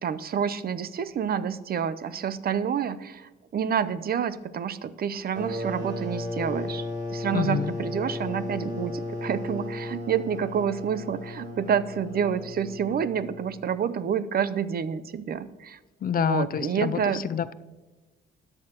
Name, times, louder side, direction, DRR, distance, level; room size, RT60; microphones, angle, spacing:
voice 1, 0.0-15.8 16.2-17.3, right 7 dB, 50° right, 15 dB, 0.6 m, -28 dB
sound 1, 5.3-13.7, left 2 dB, 75° right, 2.3 m, -35 dB
voice 2, 7.3-7.7 16.0-17.0 17.3-17.5, left 8 dB, 45° left, 15 dB, 0.5 m, -27 dB
13.5 x 9.9 x 2.9 m, 1.2 s
cardioid pair, 90°, 20 cm